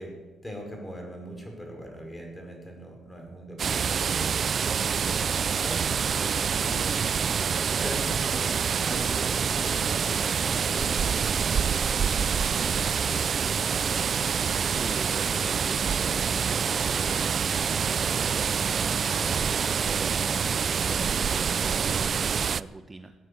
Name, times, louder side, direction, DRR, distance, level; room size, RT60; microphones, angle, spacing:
voice 1, 0.0-4.5 4.9-6.3 6.6-14.0, equal, 10° left, 2 dB, 5.1 m, -41 dB
sound 1, 3.6-22.6, right 6 dB, 50° right, 0.4 m, -26 dB
voice 2, 14.6-23.1, right 2 dB, 25° right, 8 dB, 0.9 m, -42 dB
17.5 x 9.6 x 8.4 m, 1.3 s
cardioid pair, 90°, 0 cm